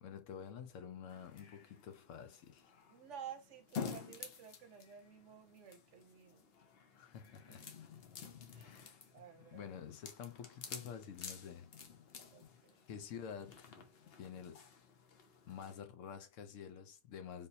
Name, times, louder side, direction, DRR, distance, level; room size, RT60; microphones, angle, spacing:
voice 1, 0.0-2.8 6.9-7.9 8.6-9.0 9.4-11.7 12.9-13.8 14.2-14.7 15.5-17.5, left 7 dB, 90° left, 1.0 m, -49 dB
sound 1, 1.1-15.7, left 6 dB, 60° left, 0.9 m, -51 dB
voice 2, 2.9-6.5 7.5-7.7 8.5-8.8 9.1-9.7 12.3-12.8, right 8 dB, 75° right, 1.1 m, -53 dB
3.7 x 2.7 x 2.7 m
omnidirectional pair, 1.3 m